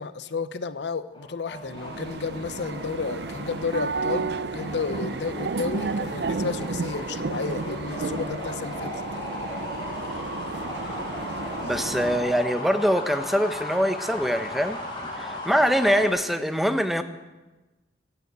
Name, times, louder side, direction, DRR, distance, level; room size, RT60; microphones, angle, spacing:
voice 1, 0.0-8.9, left 4 dB, 80° left, 13 dB, 0.7 m, -32 dB
sound 1, 1.1-16.1, left 2 dB, 25° left, 4.6 m, -37 dB
sound 2, 1.6-12.5, right 4 dB, 70° right, 0.5 m, -32 dB
voice 2, 11.6-14.8 15.2-17.0, equal, ahead, 8 dB, 0.8 m, -23 dB
15.0 x 10.5 x 8.1 m, 1.1 s
head